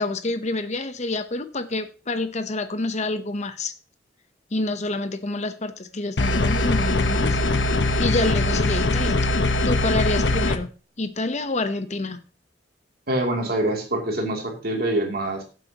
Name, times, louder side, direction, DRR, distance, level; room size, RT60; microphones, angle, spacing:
voice 1, 0.0-3.7 4.5-7.4 8.0-9.3 9.6-10.7 11.0-12.2, left 2 dB, 40° left, 0.9 m, -27 dB
sound 1, 6.2-10.6, left 2 dB, 85° left, 1.0 m, -21 dB
voice 2, 13.1-15.4, right 1 dB, 60° right, 2.9 m, -25 dB
14.5 x 7.9 x 3.0 m
head